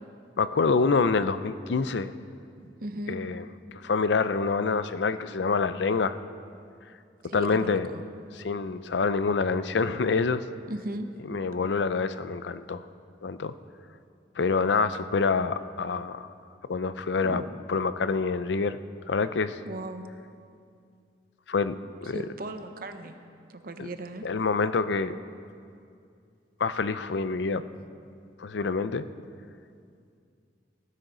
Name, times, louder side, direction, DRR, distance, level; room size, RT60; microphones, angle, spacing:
voice 1, 0.4-2.1 3.1-3.5 3.7-6.2 7.3-7.9 8.4-10.4 11.3-12.8 13.2-13.5 14.4-16.3 16.7-17.4 17.7-18.8 19.1-19.6 21.5-21.8 22.0-22.2 23.8-23.9 24.2-25.2 26.6-27.6 28.4-29.1, left 4 dB, 75° left, 13 dB, 0.5 m, -26 dB
voice 2, 2.6-3.2 7.2-8.0 10.7-11.1 17.2-17.5 19.7-20.0 22.1-23.2 23.5-24.3 27.5-27.7, right 1 dB, 55° right, 7 dB, 0.9 m, -37 dB
17.0 x 15.0 x 3.9 m, 2.4 s
head